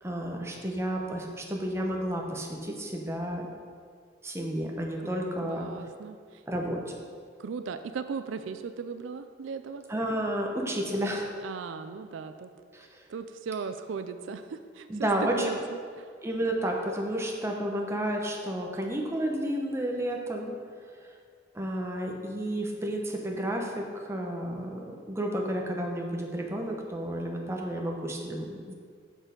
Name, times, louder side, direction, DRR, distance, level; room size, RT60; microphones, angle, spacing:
voice 1, 0.0-3.4 4.2-5.7 6.5-7.0 9.9-11.3 12.7-13.0 14.9-15.5 16.2-20.5 21.5-28.7, right 1 dB, 15° right, 0 dB, 0.8 m, -31 dB
voice 2, 5.4-6.4 7.4-9.8 11.4-12.5 13.1-15.6 16.0-16.1, right 5 dB, 80° right, 9 dB, 0.4 m, -37 dB
6.3 x 6.2 x 5.2 m, 2.1 s
head